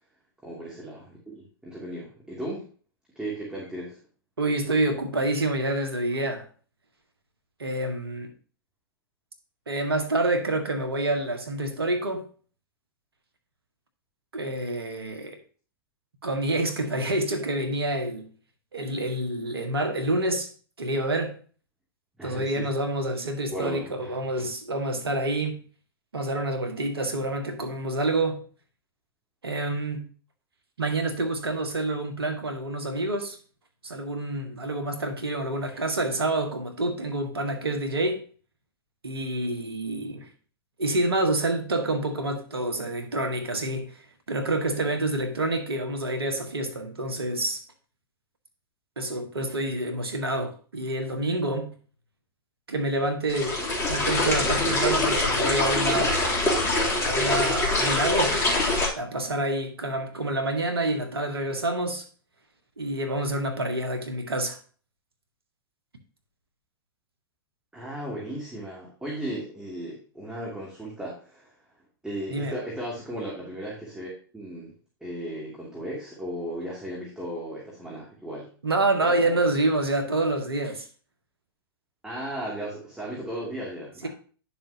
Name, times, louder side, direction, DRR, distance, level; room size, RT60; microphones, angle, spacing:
voice 1, 0.4-2.7 3.2-4.0 22.2-22.7 23.5-24.5 67.7-71.5 72.0-74.7 75.0-78.5 79.0-79.3 82.0-84.1, right 1 dB, 5° right, 2.5 m, -36 dB
voice 2, 4.4-6.4 7.6-8.3 9.7-12.2 14.3-15.4 16.2-18.3 18.7-20.5 20.8-21.4 22.2-25.6 26.1-28.4 29.4-30.1 30.8-33.4 33.8-38.2 39.0-40.3 40.8-47.6 49.0-51.7 52.7-53.6 53.9-56.4 57.0-58.4 59.0-62.1 62.8-64.6 72.3-72.6 78.6-80.9 84.0-84.1, right 2 dB, 85° right, 1.6 m, -27 dB
sound 1, 53.3-58.9, left 2 dB, 25° left, 3.1 m, -24 dB
10.5 x 6.7 x 2.8 m
hypercardioid pair, 105°, 13 cm